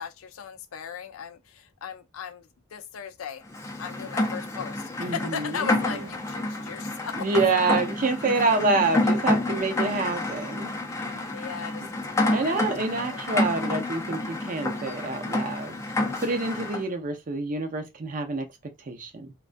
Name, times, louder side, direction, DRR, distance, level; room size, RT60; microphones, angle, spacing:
voice 1, 0.0-3.4 3.8-7.3 8.4-8.5 11.3-13.5, left 7 dB, 70° left, 0.4 m, -38 dB
Rain, 3.5-16.8, left 2 dB, 15° left, 0.4 m, -29 dB
voice 2, 5.0-5.8 7.2-10.7 11.1-11.2 11.8-11.9 12.3-15.8 16.2-18.5 18.9-19.3, right 3 dB, 40° right, 0.5 m, -27 dB
sound 1, 5.8-6.3 7.4-7.9 8.8-9.7 10.4-10.8, right 3 dB, 75° right, 0.7 m, -48 dB
2.3 x 2.2 x 2.5 m
head